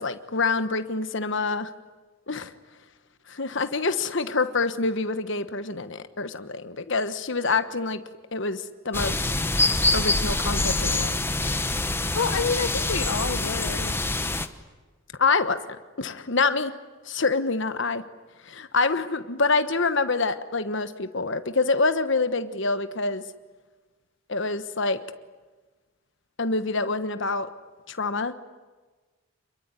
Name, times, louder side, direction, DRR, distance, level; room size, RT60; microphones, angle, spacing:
voice 1, 0.0-1.7 2.3-2.5 3.3-8.0 8.3-9.3 9.9-11.1 15.2-15.6 16.0-16.7 17.0-18.0 18.4-23.2 24.3-25.0 26.4-27.5 27.9-28.3, left 3 dB, 60° left, 10 dB, 1.3 m, -26 dB
sound 1, 8.9-14.5, left 2 dB, 10° left, 1.0 m, -25 dB
voice 2, 12.1-14.0, left 5 dB, 80° left, 10 dB, 0.9 m, -28 dB
27.5 x 22.5 x 9.7 m, 1.3 s
head